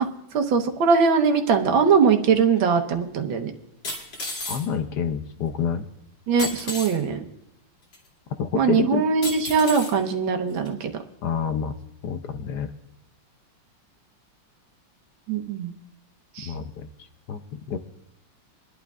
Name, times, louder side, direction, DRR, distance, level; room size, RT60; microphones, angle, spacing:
voice 1, 0.3-3.5 6.3-7.2 8.5-10.9 15.3-15.7 16.4-16.5, right 5 dB, 85° right, 5 dB, 1.8 m, -21 dB
sound 1, 2.6-2.7 3.8-4.6 6.4-6.9 7.9-8.0 9.2-9.9 10.7-10.8, left 2 dB, 85° left, 3.7 m, -32 dB
voice 2, 4.5-5.9 8.4-9.1 11.2-11.8 12.0-12.7 16.4-16.9 17.3-17.8, left 7 dB, 70° left, 9 dB, 1.1 m, -28 dB
24.0 x 11.5 x 2.4 m, 0.80 s
omnidirectional pair, 2.1 m